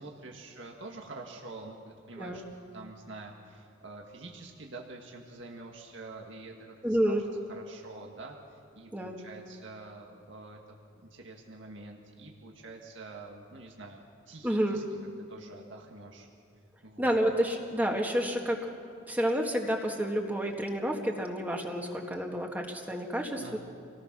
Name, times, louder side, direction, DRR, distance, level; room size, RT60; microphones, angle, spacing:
voice 1, 0.0-2.4 2.7-7.2 7.6-10.6 11.0-14.8 15.3-16.3 16.8-17.2 23.3-23.6, right 2 dB, 65° right, 0 dB, 1.9 m, -46 dB
voice 2, 6.8-7.2 8.9-9.2 14.4-14.8 17.0-18.7 19.1-23.6, equal, 10° right, 1 dB, 1.7 m, -29 dB
28.0 x 19.0 x 6.1 m, 2.5 s
head